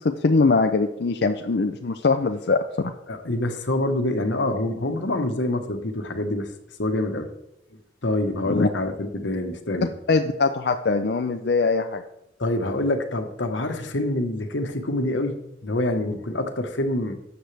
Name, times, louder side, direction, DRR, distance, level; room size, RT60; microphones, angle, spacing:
voice 1, 0.0-2.9 8.5-8.7 10.1-12.0, left 3 dB, 60° left, 5 dB, 0.5 m, -22 dB
voice 2, 3.1-6.5 6.8-7.3 8.0-9.9 12.4-17.1, left 1 dB, 90° left, 6 dB, 1.2 m, -26 dB
12.5 x 7.9 x 3.4 m, 0.83 s
head